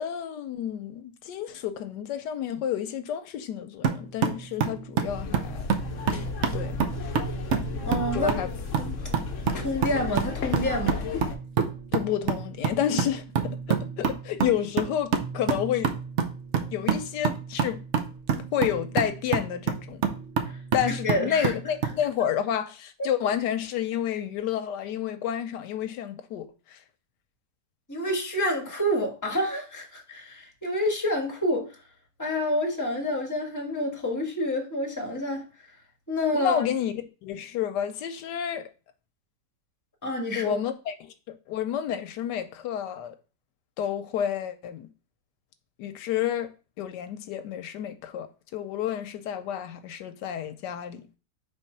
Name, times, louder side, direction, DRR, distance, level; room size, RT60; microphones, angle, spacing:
voice 1, 0.0-5.6 6.1-6.3 6.5-6.8 7.0-7.1 8.1-8.5 11.9-16.0 16.7-17.8 18.5-20.0 20.7-26.8 36.3-38.7 40.3-41.1 41.5-43.1 43.8-44.9 45.8-46.5 46.8-48.3 48.5-51.1, left 9 dB, 85° left, 1.3 m, -30 dB
sound 1, 3.8-22.0, right 6 dB, 55° right, 0.8 m, -29 dB
sound 2, 5.1-11.4, left 5 dB, 55° left, 1.1 m, -34 dB
voice 2, 7.8-8.3 8.7-8.9 9.5-11.0 20.4-20.6 20.9-21.5 27.9-31.8 32.2-35.5 36.1-36.6 40.0-40.6, left 1 dB, 10° left, 1.2 m, -28 dB
4.6 x 3.8 x 5.5 m
omnidirectional pair, 1.8 m